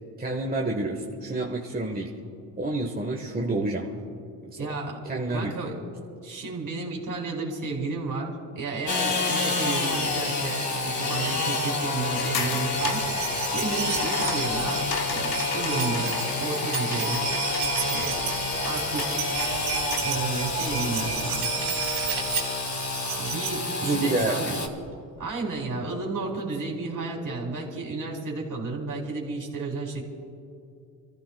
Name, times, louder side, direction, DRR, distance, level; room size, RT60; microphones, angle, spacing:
voice 1, 0.2-2.1 2.6-3.9 4.5-4.7 5.0-5.5 23.8-24.6, right 2 dB, 20° right, 0 dB, 1.4 m, -28 dB
voice 2, 4.6-5.0 5.3-5.8 6.2-13.0 13.5-17.2 17.9-18.3 18.6-19.2 20.0-21.5 23.2-24.5 25.2-30.0, right 3 dB, 40° right, -1 dB, 3.6 m, -32 dB
Engine / Sawing, 8.9-24.7, left 3 dB, 35° left, 2.4 m, -29 dB
sound 1, 12.1-20.2, left 6 dB, 50° left, 1.3 m, -36 dB
sound 2, 12.8-23.6 24.6-24.7 24.9-25.0, right 6 dB, 80° right, 2.9 m, -32 dB
27.5 x 14.5 x 2.4 m, 2.6 s
hypercardioid pair, 60°, 47 cm